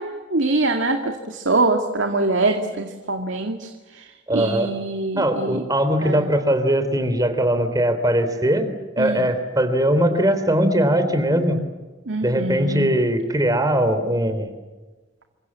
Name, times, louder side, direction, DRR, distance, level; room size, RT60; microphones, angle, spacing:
voice 1, 0.0-4.1 4.3-5.6 6.0-6.3 9.0-9.3 12.1-12.9, right 2 dB, 85° right, 4 dB, 2.2 m, -24 dB
voice 2, 4.3-4.7 5.2-8.7 9.0-11.6 12.2-14.5, right 1 dB, 20° right, 10 dB, 3.6 m, -20 dB
29.0 x 25.5 x 7.6 m, 1.2 s
head